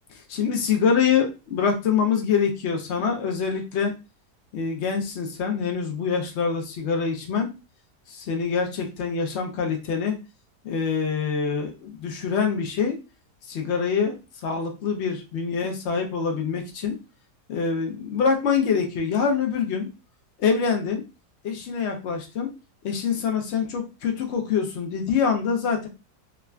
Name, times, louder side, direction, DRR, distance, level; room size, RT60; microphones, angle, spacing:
voice 1, 0.1-3.9 4.5-7.5 8.1-10.2 10.6-13.0 13.4-14.2 14.4-17.0 17.5-19.9 20.4-21.0 21.4-22.5 22.8-25.9, left 6 dB, 85° left, 3 dB, 0.6 m, -25 dB
3.4 x 2.1 x 2.3 m, 0.29 s
omnidirectional pair, 1.8 m